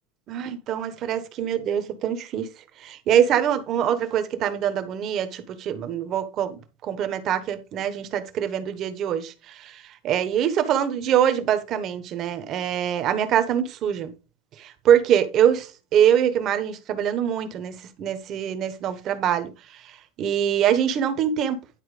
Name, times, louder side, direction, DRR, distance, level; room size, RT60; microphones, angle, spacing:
voice 1, 0.3-2.5 2.8-6.6 6.8-14.1 14.6-19.5 20.2-21.6, right 9 dB, 35° right, 1.2 m, -24 dB
10.5 x 4.4 x 5.0 m
supercardioid pair, 150°, 0 cm